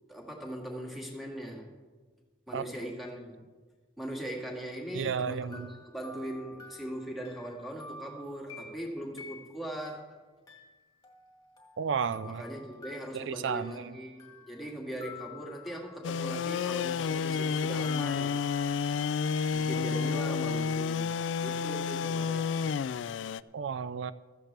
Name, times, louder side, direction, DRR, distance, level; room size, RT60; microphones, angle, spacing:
voice 1, 0.1-1.7 2.5-3.5 4.0-10.2 12.2-18.3 19.5-21.1 21.4-22.7, right 1 dB, ahead, -1 dB, 2.0 m, -40 dB
voice 2, 4.9-5.7 11.8-12.4 13.1-13.9 23.5-24.1, right 6 dB, 85° right, 15 dB, 0.4 m, -32 dB
sound 1, 5.3-10.0 10.5-14.8 15.0-19.5, left 4 dB, 20° left, 1.8 m, -51 dB
sound 2, 16.0-23.4, left 6 dB, 80° left, 0.3 m, -30 dB
15.0 x 13.5 x 3.4 m, 1.4 s
head